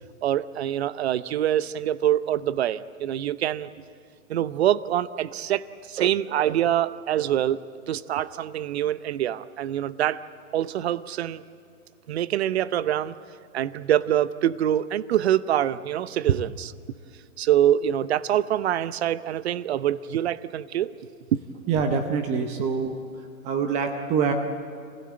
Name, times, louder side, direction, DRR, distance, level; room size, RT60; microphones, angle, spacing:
voice 1, 0.2-3.7 4.3-7.6 7.9-10.2 10.5-11.4 12.1-13.1 13.5-16.7 17.4-20.9 21.3-21.4, right 11 dB, 45° right, 16 dB, 0.8 m, -25 dB
voice 2, 21.7-23.0 23.4-24.3, right 6 dB, 15° right, 5 dB, 0.8 m, -25 dB
26.5 x 16.5 x 8.8 m, 2.3 s
hypercardioid pair, 145°, 43 cm